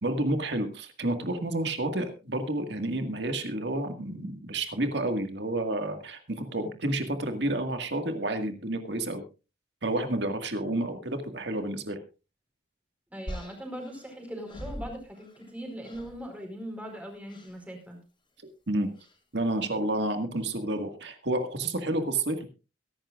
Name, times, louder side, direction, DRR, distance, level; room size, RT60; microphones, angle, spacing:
voice 1, 0.0-9.2 9.8-12.0 18.7-18.9 19.3-22.5, right 1 dB, 60° right, 6 dB, 1.9 m, -30 dB
voice 2, 13.1-18.0, equal, 10° right, 2 dB, 4.7 m, -40 dB
sound 1, 13.3-15.5 15.8-16.2 17.3-17.6 18.9-19.2, equal, 25° left, 4.6 m, -42 dB
22.5 x 11.5 x 2.5 m, 0.31 s
head